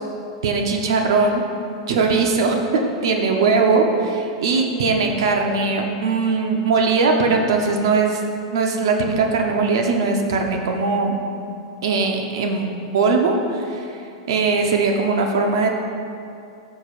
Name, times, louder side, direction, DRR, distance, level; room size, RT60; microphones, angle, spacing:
voice 1, 0.4-1.4 1.9-8.2 8.5-11.1 11.8-13.9 14.3-15.7, right 4 dB, 65° right, 2 dB, 0.9 m, -20 dB
13.0 x 6.3 x 2.5 m, 2.6 s
hypercardioid pair, 100°, 3 cm